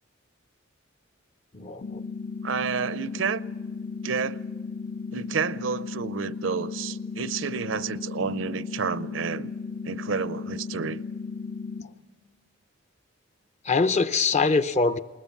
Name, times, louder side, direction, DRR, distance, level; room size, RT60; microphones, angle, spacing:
voice 1, 1.5-2.0 13.6-15.0, left 4 dB, 35° left, 0.6 m, -23 dB
sound 1, 1.8-11.8, left 4 dB, 80° left, 1.4 m, -35 dB
voice 2, 2.4-3.4 4.0-4.4 5.1-9.5 9.8-11.0, right 6 dB, 75° right, 0.6 m, -30 dB
21.0 x 20.0 x 7.1 m
head